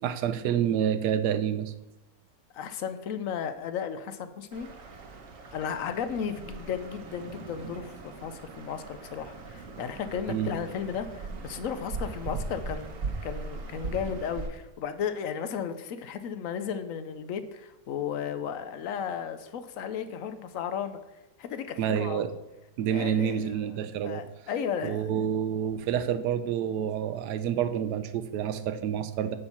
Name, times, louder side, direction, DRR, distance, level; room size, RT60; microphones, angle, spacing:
voice 1, 0.0-1.7 10.3-10.5 21.8-22.3 22.8-24.3 24.8-29.4, right 9 dB, 75° right, 11 dB, 1.2 m, -28 dB
voice 2, 2.5-4.7 5.5-21.0 21.4-22.3 22.9-23.7 24.0-25.1, left 7 dB, 65° left, 10 dB, 0.9 m, -34 dB
sound 1, 4.5-14.5, right 4 dB, 55° right, 1.3 m, -39 dB
9.7 x 4.4 x 5.8 m, 0.95 s
omnidirectional pair, 1.8 m